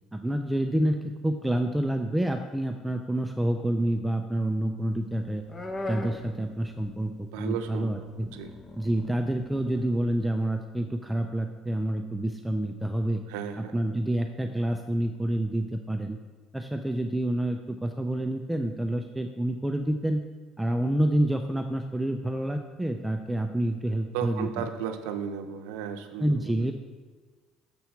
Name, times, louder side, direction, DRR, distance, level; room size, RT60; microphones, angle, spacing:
voice 1, 0.1-5.4 5.9-8.3 8.8-13.2 13.6-16.2 16.5-20.2 20.6-24.5 26.2-26.7, right 1 dB, 5° right, 5 dB, 0.4 m, -28 dB
sound 1, 4.8-7.4 7.7-10.1, left 2 dB, 20° left, 0.7 m, -40 dB
voice 2, 7.3-8.5 13.3-13.9 24.1-26.7, right 8 dB, 90° right, 7 dB, 0.6 m, -35 dB
6.9 x 4.2 x 5.8 m, 1.4 s
cardioid pair, 110°, 0 cm